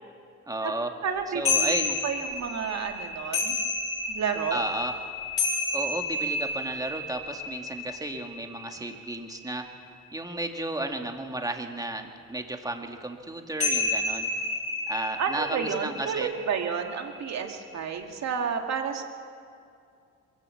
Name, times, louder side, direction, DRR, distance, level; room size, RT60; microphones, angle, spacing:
voice 1, 0.5-0.9 1.3-2.0 4.5-4.9 5.7-14.3 14.9-16.3, right 2 dB, 10° right, 4 dB, 2.1 m, -33 dB
voice 2, 1.0-1.7 2.0-3.6 4.1-4.6 15.2-19.0, right 6 dB, 60° right, 4 dB, 2.3 m, -30 dB
sound 1, 1.5-10.1 13.6-18.2, left 3 dB, 45° left, 6.6 m, -31 dB
23.0 x 15.0 x 7.9 m, 2.4 s
cardioid pair, 90°, 30 cm